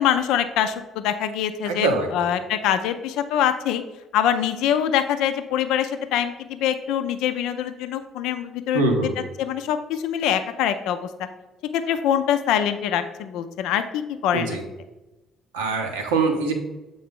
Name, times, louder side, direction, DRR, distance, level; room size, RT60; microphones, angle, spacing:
voice 1, 0.0-3.8 4.1-8.8 9.4-11.1 11.7-14.6, left 9 dB, 70° left, 9 dB, 0.4 m, -24 dB
voice 2, 1.7-2.3 8.7-9.2 14.3-14.6 15.5-16.5, right 3 dB, 80° right, 3 dB, 0.8 m, -23 dB
7.4 x 3.9 x 3.6 m, 1.1 s
hypercardioid pair, 50°, 0 cm